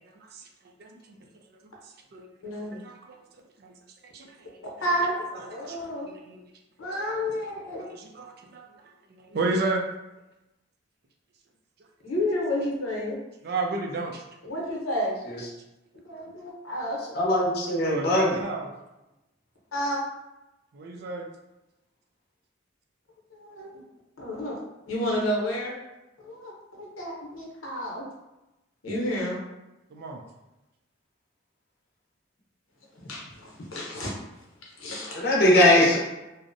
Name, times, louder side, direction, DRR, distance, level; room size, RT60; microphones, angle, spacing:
voice 1, 0.8-1.3 2.1-2.3 2.8-3.2 3.6-3.8 4.0-4.6 5.0-5.1 5.7-6.4 6.9-7.0 7.8-8.7 9.1-9.8 13.4-14.2 17.7-18.7 20.7-21.2 29.9-30.2, right 3 dB, 50° right, 2 dB, 0.3 m, -32 dB
voice 2, 2.4-2.8 4.8-6.1 6.8-7.8 12.0-13.2 14.4-15.2 16.0-17.0 19.7-20.0 23.3-23.8 24.2-24.6 24.9-25.7 26.2-28.1 28.8-29.4 33.0-34.1 34.8-35.2, equal, 90° left, -3 dB, 0.8 m, -30 dB
voice 3, 17.1-18.4 35.2-36.0, left 1 dB, 50° left, -3 dB, 0.6 m, -20 dB
2.6 x 2.0 x 2.5 m, 0.98 s
head